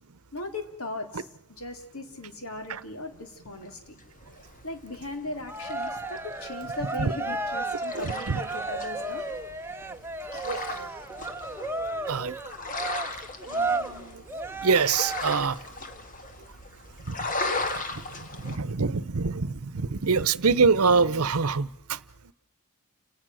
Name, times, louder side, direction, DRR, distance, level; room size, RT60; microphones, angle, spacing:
voice 1, 0.3-1.3 1.6-4.0 4.6-9.3 10.3-10.8 14.3-14.4, left 2 dB, 75° left, 5 dB, 3.6 m, -38 dB
sound 1, 3.2-18.6, left 3 dB, 35° left, 2.0 m, -38 dB
Cheering, 5.5-15.5, right 3 dB, 10° right, 1.0 m, -33 dB
voice 2, 7.9-8.4 10.4-10.9 12.1-12.3 13.4-14.2 14.6-15.6 17.1-17.2 17.7-18.0 18.3-22.0, right 5 dB, 80° right, 18 dB, 0.9 m, -25 dB
29.5 x 18.0 x 6.4 m, 0.87 s
head